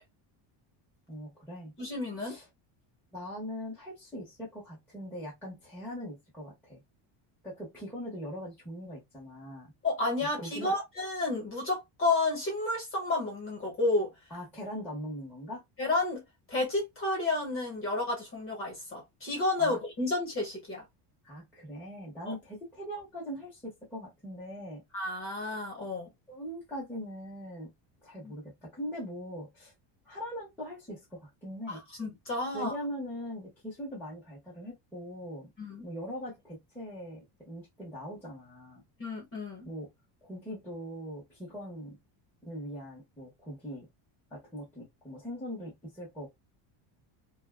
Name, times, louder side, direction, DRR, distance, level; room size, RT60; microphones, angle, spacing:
voice 1, 1.1-1.7 2.2-2.4 3.1-6.8 7.4-9.7 10.4-10.7 14.3-15.6 19.6-19.8 21.2-24.8 26.3-27.7 28.0-29.7 30.0-31.8 32.5-35.5 35.8-38.8 39.6-39.9 40.2-42.0 42.4-43.9 44.3-46.3, equal, 5° left, 0.8 m, -41 dB
voice 2, 1.8-2.4 9.8-14.1 15.8-16.2 16.5-20.8 22.3-22.4 24.9-26.1 28.2-28.3 31.7-32.7 35.6-35.9 39.0-39.7, left 2 dB, 25° left, 1.1 m, -31 dB
2.5 x 2.3 x 2.2 m
cardioid pair, 175°, 49 cm